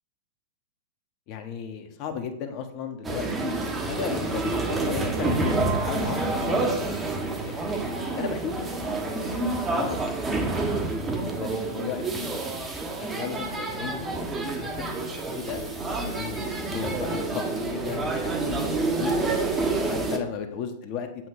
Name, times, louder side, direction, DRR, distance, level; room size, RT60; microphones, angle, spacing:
voice 1, 1.3-6.8 7.4-10.6 11.2-12.5 13.0-15.7 16.0-19.2 19.9-21.1, left 7 dB, 45° left, 6 dB, 1.4 m, -35 dB
sound 1, 3.0-20.2, right 3 dB, 15° right, 1.3 m, -28 dB
7.8 x 7.7 x 3.8 m, 0.76 s
hypercardioid pair, 105°, 0 cm